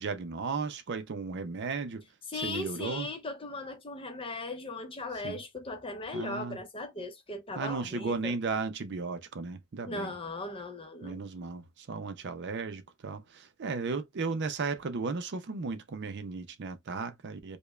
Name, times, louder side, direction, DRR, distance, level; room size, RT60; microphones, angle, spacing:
voice 1, 0.0-2.0 2.3-3.1 5.2-5.4 6.1-6.6 7.6-10.1 11.0-17.6, right 4 dB, 50° right, 0.4 m, -35 dB
voice 2, 2.3-8.3 9.9-11.2, left 2 dB, 25° left, 0.7 m, -38 dB
5.1 x 2.2 x 2.2 m
head